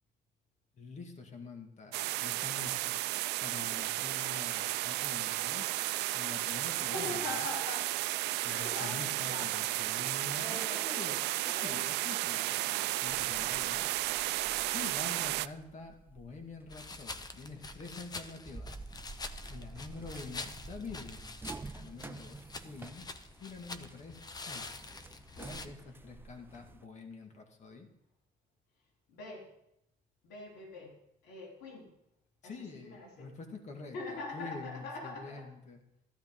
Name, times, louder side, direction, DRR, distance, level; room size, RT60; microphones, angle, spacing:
voice 1, 0.8-2.9 3.4-5.8 6.1-7.5 8.4-13.8 14.7-18.8 19.5-21.4 21.7-23.1 23.4-24.8 25.4-27.9 32.4-35.8, left 4 dB, 45° left, 4 dB, 2.2 m, -46 dB
sound 1, 1.9-15.5, right 17 dB, 80° right, 0.4 m, -33 dB
voice 2, 6.8-7.9 8.4-9.5 10.3-11.2 11.4-11.8 13.4-13.7 14.2-14.3 15.1-15.3 29.1-29.5 30.2-30.9 31.2-31.9 32.4-33.3 33.9-35.5, left 2 dB, 90° left, -2 dB, 3.6 m, -43 dB
sound 2, 13.1-26.9, right 3 dB, 15° right, 0.4 m, -50 dB
sound 3, 16.7-25.7, left 3 dB, 25° left, 0.8 m, -46 dB
14.5 x 12.5 x 3.8 m, 0.80 s
cardioid pair, 110°, 17 cm